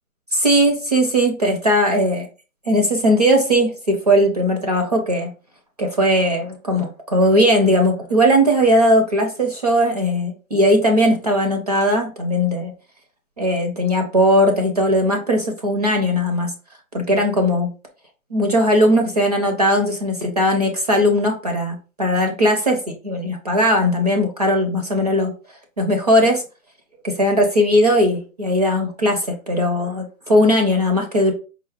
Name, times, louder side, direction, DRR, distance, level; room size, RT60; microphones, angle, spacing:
voice 1, 0.3-2.3 2.7-5.3 5.8-12.7 13.4-16.5 16.9-17.7 18.3-25.3 25.8-26.4 27.0-31.3, equal, 30° right, 3 dB, 0.4 m, -18 dB
4.4 x 2.0 x 3.3 m, 0.34 s
hypercardioid pair, 155°, 41 cm